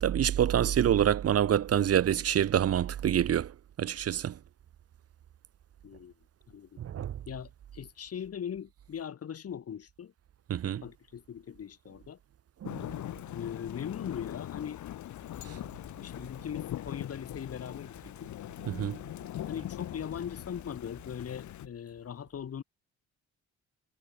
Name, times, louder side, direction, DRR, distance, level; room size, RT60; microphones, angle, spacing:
voice 1, 0.0-3.5 3.8-4.3 6.8-7.1 10.5-10.8 12.6-12.8 18.7-19.0, right 10 dB, 50° right, 1.0 m, -26 dB
voice 2, 5.8-6.1 6.5-6.8 7.3-10.1 10.7-12.2 13.3-14.8 16.0-18.3 19.5-22.6, left 8 dB, 50° left, 2.7 m, -40 dB
Thunder / Rain, 12.6-21.7, left 13 dB, 75° left, 1.8 m, -41 dB
cardioid pair, 90°, 30 cm